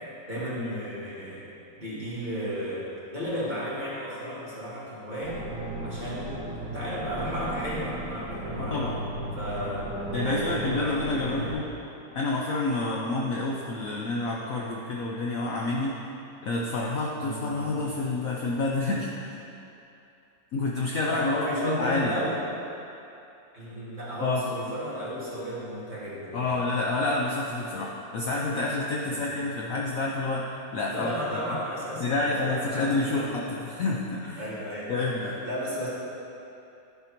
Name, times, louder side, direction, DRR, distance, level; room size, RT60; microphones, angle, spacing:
voice 1, 0.3-1.4 1.8-5.4 5.8-6.4 6.7-8.9 9.4-9.9 10.2-11.5 17.2-17.7 21.1-22.4 23.5-26.6 29.0-29.4 30.9-33.3 34.4-35.1 35.4-35.9, equal, 25° right, -10 dB, 1.9 m, -34 dB
sound 1, 5.2-11.5, right 1 dB, 5° left, 1.2 m, -35 dB
voice 2, 8.6-9.0 10.1-11.7 12.1-16.0 16.4-19.4 20.5-22.2 24.2-24.5 26.3-31.4 32.0-34.4 34.9-35.4, left 2 dB, 65° left, -3 dB, 0.9 m, -28 dB
11.0 x 5.8 x 3.0 m, 2.8 s
omnidirectional pair, 1.9 m